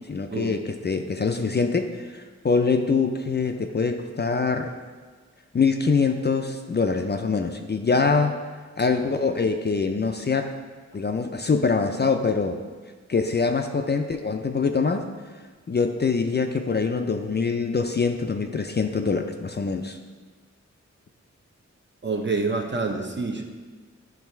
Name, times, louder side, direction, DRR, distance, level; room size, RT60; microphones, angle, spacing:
voice 1, 0.1-4.7 5.5-8.4 8.8-10.5 10.9-12.6 13.1-15.0 15.7-20.0, left 4 dB, 35° left, 5 dB, 0.4 m, -24 dB
voice 2, 22.0-23.4, right 3 dB, 40° right, 2 dB, 0.7 m, -27 dB
9.5 x 3.3 x 4.4 m, 1.4 s
wide cardioid pair, 100°, 29 cm